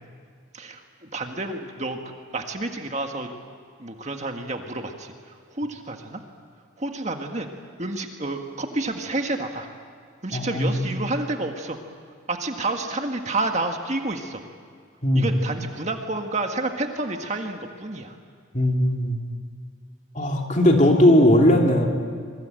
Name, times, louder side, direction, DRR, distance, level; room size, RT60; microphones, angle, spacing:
voice 1, 0.5-3.3 3.8-6.2 6.8-7.5 7.8-9.7 10.2-11.8 12.3-14.4 15.1-18.1, right 2 dB, 35° right, 4 dB, 1.8 m, -29 dB
voice 2, 10.3-11.1 15.0-15.4 18.5-19.2 20.1-21.9, left 1 dB, 35° left, 1 dB, 3.0 m, -18 dB
27.0 x 23.0 x 9.0 m, 2.1 s
head